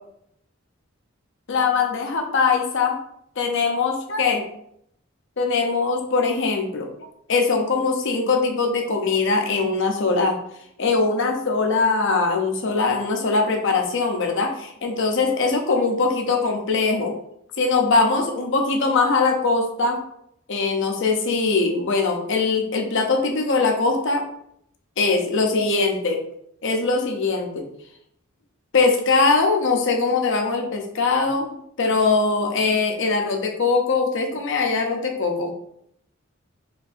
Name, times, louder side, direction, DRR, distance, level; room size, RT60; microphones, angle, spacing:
voice 1, 1.5-3.0 3.4-4.4 5.4-6.9 7.3-10.4 10.8-17.1 17.6-20.0 20.5-24.2 25.0-26.2 26.6-27.6 28.7-35.5, left 4 dB, 65° left, 3 dB, 0.7 m, -21 dB
4.3 x 3.2 x 2.6 m, 0.72 s
head